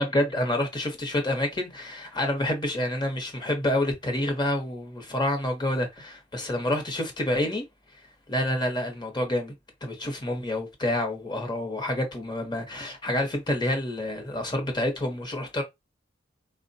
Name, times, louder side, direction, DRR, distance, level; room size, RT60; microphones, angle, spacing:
voice 1, 0.0-7.6 8.3-9.5 9.8-15.6, left 1 dB, 25° left, 0.8 m, -28 dB
4.2 x 2.1 x 2.6 m
head